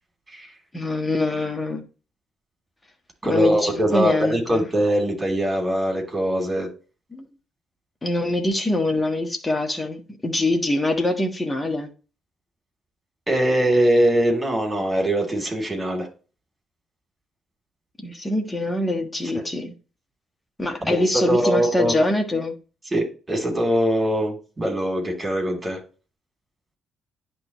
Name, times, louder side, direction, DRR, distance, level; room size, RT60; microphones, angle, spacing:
voice 1, 0.7-1.8 3.3-4.6 7.1-7.3 8.0-11.9 18.0-19.7 20.6-22.5, left 2 dB, 20° left, 4 dB, 1.5 m, -24 dB
voice 2, 3.2-6.7 13.3-16.1 20.8-21.9 22.9-25.8, right 1 dB, 20° right, 1 dB, 3.1 m, -22 dB
10.5 x 3.5 x 3.0 m, 0.35 s
figure-of-eight pair, 45°, 0 cm